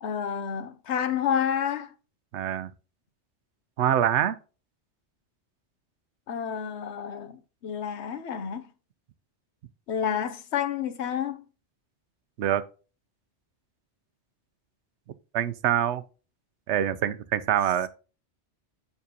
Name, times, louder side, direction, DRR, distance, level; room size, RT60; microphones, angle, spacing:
voice 1, 0.0-1.9 6.3-8.6 9.9-11.4, left 8 dB, 75° left, 1.0 m, -29 dB
voice 2, 2.3-2.7 3.8-4.4 12.4-12.6 15.3-16.0 16.7-17.9, right 10 dB, 90° right, 0.9 m, -25 dB
7.1 x 6.1 x 2.8 m
omnidirectional pair, 1.1 m